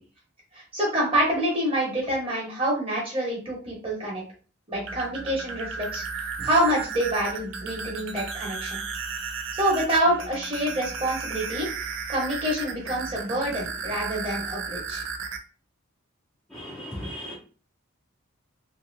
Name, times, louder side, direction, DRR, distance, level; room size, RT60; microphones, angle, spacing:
voice 1, 0.5-4.2 4.7-8.8 9.5-11.7 12.1-15.0, right 1 dB, 25° right, -3 dB, 1.1 m, -27 dB
sound 1, 4.7-15.4, right 5 dB, 60° right, 0.4 m, -34 dB
voice 2, 16.5-17.4, equal, 5° left, -5 dB, 0.5 m, -36 dB
2.8 x 2.8 x 2.6 m, 0.37 s
head